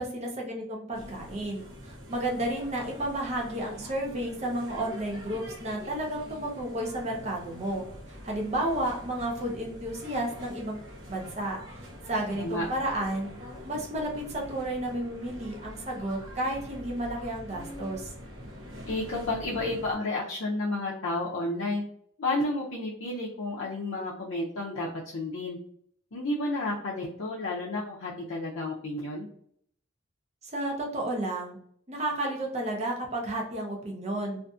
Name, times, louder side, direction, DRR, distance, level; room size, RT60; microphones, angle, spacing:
voice 1, 0.0-7.8 8.2-10.8 11.1-11.6 12.1-13.3 13.6-18.1 30.5-31.6 31.9-34.4, right 1 dB, 35° right, -1 dB, 0.6 m, -32 dB
sound 1, 0.9-20.0, equal, 75° right, 0.8 m, -45 dB
voice 2, 18.9-21.8 22.2-24.9 25.1-25.6 26.1-29.3, left 2 dB, 75° left, -5 dB, 0.5 m, -31 dB
2.5 x 2.5 x 2.3 m, 0.64 s
head